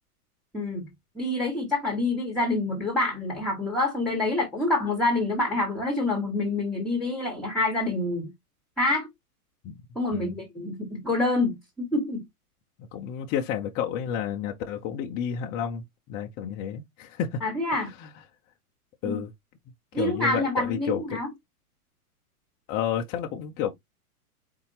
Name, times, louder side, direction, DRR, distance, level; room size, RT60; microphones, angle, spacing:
voice 1, 0.5-0.9 1.1-8.3 8.8-9.1 9.9-12.2 17.4-17.9 19.0-19.2 19.9-21.3, left 2 dB, ahead, 1.4 m, -27 dB
voice 2, 12.9-17.4 18.0-18.1 19.0-19.3 19.9-21.2 22.7-23.7, left 8 dB, 20° left, 0.6 m, -31 dB
4.5 x 4.1 x 2.8 m
hypercardioid pair, 135°, 46 cm